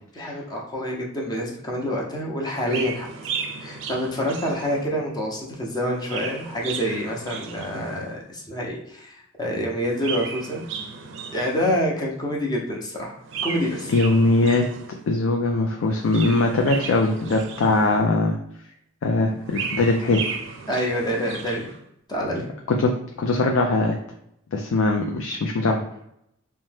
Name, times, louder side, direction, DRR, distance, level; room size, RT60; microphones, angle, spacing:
voice 1, 0.1-3.1 3.6-10.6 11.3-13.9 20.7-21.7 22.1-22.5, equal, 20° left, -2 dB, 0.6 m, -27 dB
Chirp tweet, 2.6-5.1 5.8-8.2 9.8-12.0 13.2-15.1 15.9-18.2 19.2-21.8, right 5 dB, 65° right, 0.4 m, -35 dB
voice 2, 13.9-14.7 15.1-18.4 19.0-20.2 22.7-22.9 23.2-24.0 24.5-25.8, left 2 dB, 80° left, 2 dB, 0.4 m, -21 dB
2.7 x 2.1 x 3.3 m, 0.77 s
head